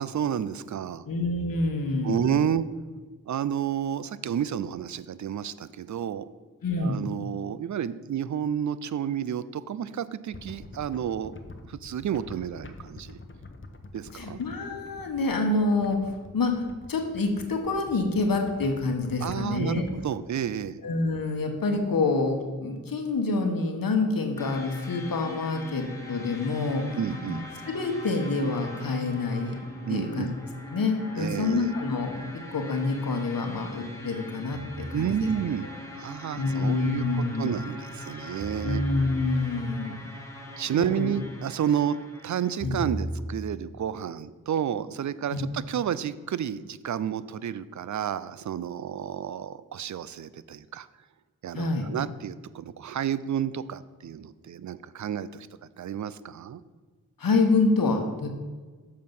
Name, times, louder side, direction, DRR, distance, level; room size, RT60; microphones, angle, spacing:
voice 1, 0.0-1.0 2.0-2.7 3.3-6.3 6.8-11.3 11.7-13.2 13.9-14.4 19.2-20.8 26.9-27.4 29.9-30.3 31.2-31.7 34.9-35.7 36.0-38.8 40.6-42.0 42.2-50.9 51.4-55.5 55.8-56.6, right 9 dB, 50° right, 16 dB, 0.5 m, -30 dB
voice 2, 1.1-2.4 6.6-7.0 14.1-19.8 20.8-26.8 27.3-27.4 27.7-29.6 29.9-30.3 30.7-32.2 32.5-35.3 36.4-37.6 38.6-40.0 40.8-41.1 42.6-42.8 45.3-45.4 51.5-51.9 57.2-58.3, left 3 dB, 60° left, 4 dB, 1.2 m, -27 dB
sound 1, 10.3-20.4, left 2 dB, 30° left, 0.9 m, -46 dB
sound 2, 24.4-42.6, left 1 dB, 10° left, 1.6 m, -42 dB
sound 3, 34.5-35.3 38.4-39.5 42.6-43.5, right 1 dB, 20° right, 1.4 m, -35 dB
7.4 x 4.6 x 5.4 m, 1.4 s
cardioid pair, 40°, 38 cm